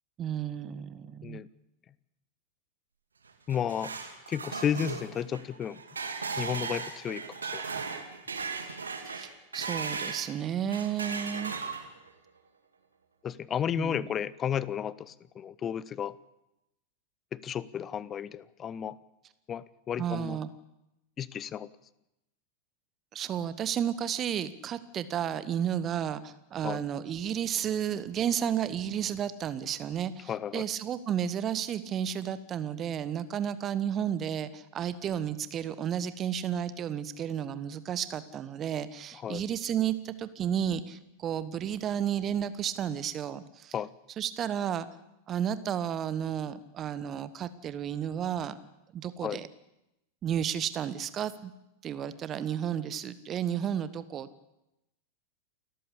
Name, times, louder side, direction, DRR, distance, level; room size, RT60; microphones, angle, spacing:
voice 1, 0.2-1.4 9.1-11.5 13.7-14.1 20.0-20.5 23.1-43.7 44.2-44.9 45.3-48.6 48.9-49.5 50.2-51.5 51.8-54.5, right 9 dB, 30° right, 15 dB, 1.2 m, -32 dB
sound 1, 3.3-10.3 10.7-12.1, right 5 dB, 75° right, 2.4 m, -37 dB
voice 2, 3.5-3.9 4.3-5.8 6.4-7.6 13.2-16.2 17.3-19.0 19.5-20.4 21.2-21.7 26.6-26.8 30.3-30.6 39.2-39.4 43.7-43.9 49.2-49.4, left 9 dB, 25° left, 20 dB, 0.8 m, -33 dB
29.0 x 14.0 x 8.4 m, 0.89 s
figure-of-eight pair, 90°, 0 cm